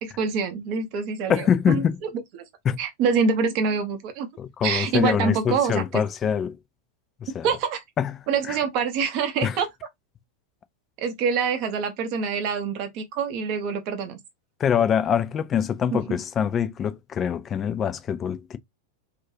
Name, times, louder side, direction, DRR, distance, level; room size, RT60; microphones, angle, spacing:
voice 1, 0.0-1.8 2.8-4.3 4.6-5.8 7.4-7.8 8.3-9.7 11.0-14.2, right 5 dB, 45° right, 0.6 m, -25 dB
voice 2, 1.3-2.0 2.6-2.8 4.4-6.6 7.2-7.5 8.0-8.6 9.4-9.6 14.6-18.6, left 8 dB, 25° left, 0.3 m, -24 dB
2.5 x 2.2 x 2.7 m
figure-of-eight pair, 90°, 0 cm